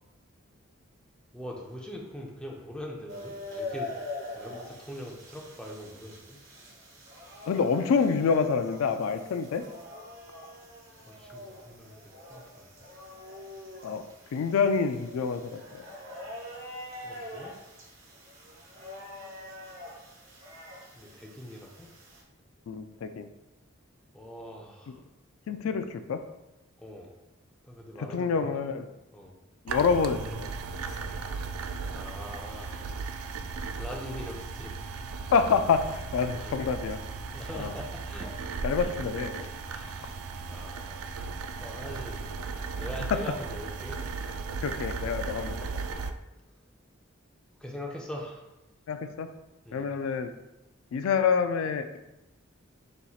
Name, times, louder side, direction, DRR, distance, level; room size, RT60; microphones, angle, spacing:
voice 1, 1.3-6.4 11.1-12.0 12.3-12.7 17.0-17.6 20.9-21.9 24.1-25.0 26.8-27.1 27.6-28.5 29.1-29.3 31.9-32.8 33.7-34.7 36.3-36.6 37.3-38.3 39.6-42.4 42.7-44.0 47.6-48.4 49.6-49.9, equal, 5° left, -1 dB, 0.5 m, -42 dB
sound 1, 3.1-22.2, left 2 dB, 70° right, 1.2 m, -44 dB
voice 2, 7.5-9.6 13.8-14.0 14.3-15.9 22.7-23.3 25.5-26.2 28.0-28.8 29.7-30.5 35.3-37.0 37.5-37.7 38.6-39.5 44.6-45.6 48.9-49.3 49.7-50.3 50.9-52.0, left 5 dB, 80° left, 9 dB, 0.3 m, -27 dB
sound 2, 29.7-46.1, right 4 dB, 85° right, 0.3 m, -36 dB
4.3 x 4.1 x 2.4 m, 0.96 s
head